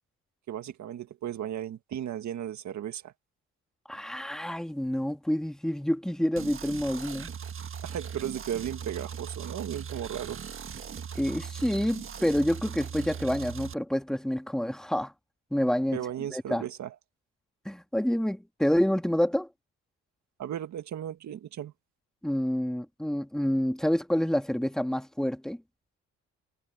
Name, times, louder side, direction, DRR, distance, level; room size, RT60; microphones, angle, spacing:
voice 1, 0.5-3.1 7.8-10.4 15.9-16.9 20.4-21.7, right 10 dB, 65° right, 1.7 m, -35 dB
voice 2, 3.9-7.3 11.1-15.1 15.5-16.0 16.3-16.7 17.7-19.5 22.2-25.6, equal, ahead, 2.3 m, -28 dB
sound 1, 6.4-13.7, right 7 dB, 45° right, 1.6 m, -39 dB
cardioid pair, 90°, 30 cm